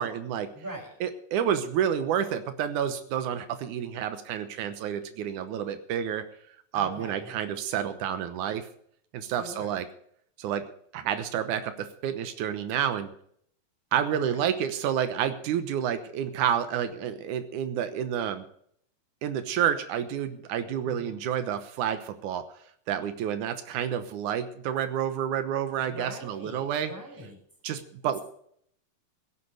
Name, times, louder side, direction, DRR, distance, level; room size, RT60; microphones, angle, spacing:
voice 1, 0.0-0.5 1.0-6.2 6.7-8.7 9.1-9.9 10.4-10.6 10.9-13.1 13.9-18.4 19.2-22.4 22.9-26.9 27.6-28.2, right 9 dB, 90° right, 10 dB, 2.5 m, -29 dB
voice 2, 0.5-0.9 6.7-7.3 9.2-9.7 14.1-14.5 25.8-27.4, right 1 dB, 5° right, 0 dB, 5.0 m, -42 dB
16.5 x 8.5 x 6.7 m, 0.65 s
omnidirectional pair, 3.4 m